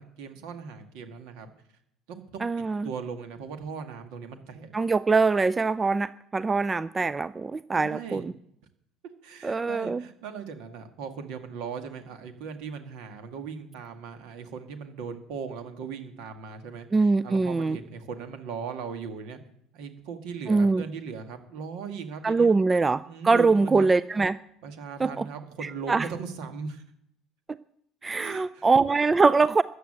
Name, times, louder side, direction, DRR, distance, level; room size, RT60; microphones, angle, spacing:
voice 1, 0.0-1.5 2.1-4.7 7.7-8.3 9.2-19.4 19.7-22.7 23.0-24.0 24.6-26.8 28.2-28.7, right 6 dB, 65° right, 7 dB, 2.0 m, -38 dB
voice 2, 2.4-2.9 4.7-8.3 9.4-10.0 16.9-17.8 20.5-20.8 22.2-24.4 25.0-25.3 25.9-26.1 28.0-29.6, right 4 dB, 25° right, 17 dB, 0.4 m, -23 dB
14.0 x 9.4 x 7.6 m, 0.73 s
hypercardioid pair, 65°, 0 cm